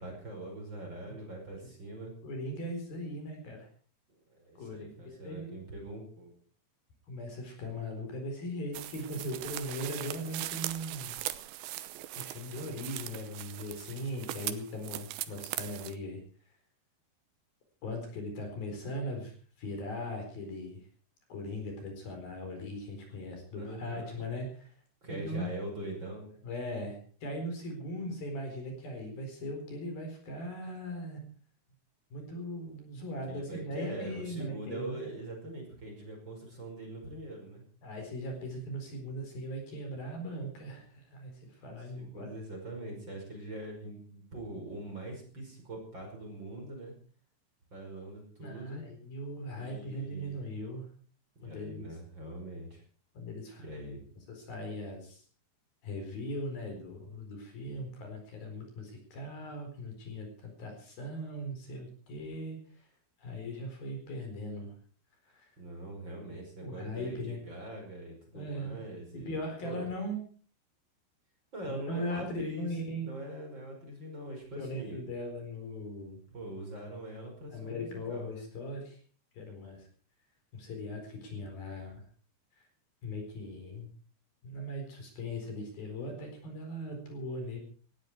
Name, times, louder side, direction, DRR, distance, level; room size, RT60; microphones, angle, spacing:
voice 1, 0.0-2.1 4.3-6.3 23.5-24.3 25.0-26.4 33.3-37.6 41.7-46.9 47.7-48.8 49.6-50.5 51.4-52.8 53.6-54.0 65.6-69.9 71.5-72.7 73.0-75.0 76.3-78.5, right 1 dB, 25° right, 1 dB, 5.7 m, -43 dB
voice 2, 2.2-3.7 4.6-5.6 7.1-11.1 12.2-16.2 17.8-20.8 21.3-24.7 25.1-25.5 26.4-31.2 32.1-35.1 37.8-42.3 48.4-50.9 51.4-51.9 53.2-53.6 54.3-55.2 55.8-62.9 63.2-64.7 65.3-65.5 66.6-67.4 68.3-68.8 69.1-70.2 71.6-73.1 74.5-76.2 77.5-79.0 79.3-79.9 80.5-82.0 82.6-82.7 83.0-83.9 84.4-87.6, equal, 55° left, 4 dB, 6.0 m, -39 dB
sound 1, 8.7-15.9, right 15 dB, 85° right, 3.2 m, -40 dB
19.0 x 15.5 x 4.6 m, 0.43 s
omnidirectional pair, 5.1 m